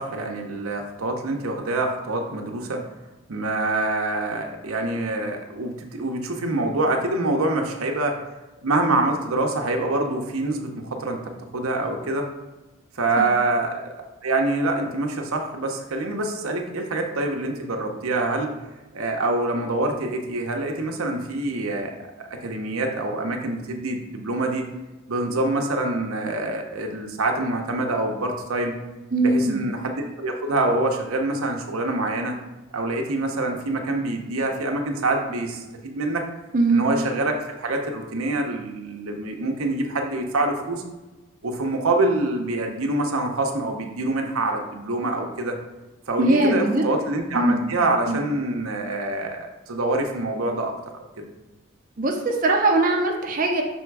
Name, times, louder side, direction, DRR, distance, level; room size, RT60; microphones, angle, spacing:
voice 1, 0.0-2.8 3.3-8.2 8.6-12.3 12.9-13.8 14.2-18.6 18.9-24.7 25.1-28.8 29.2-32.4 32.7-36.3 36.7-40.8 41.4-45.6 46.1-51.3, right 2 dB, 85° right, 3 dB, 0.8 m, -25 dB
voice 2, 29.1-29.6 36.5-36.9 46.2-46.9 47.3-47.7 48.1-48.2 52.0-53.6, right 2 dB, 40° right, 2 dB, 0.6 m, -21 dB
6.1 x 3.6 x 4.7 m, 1.1 s
head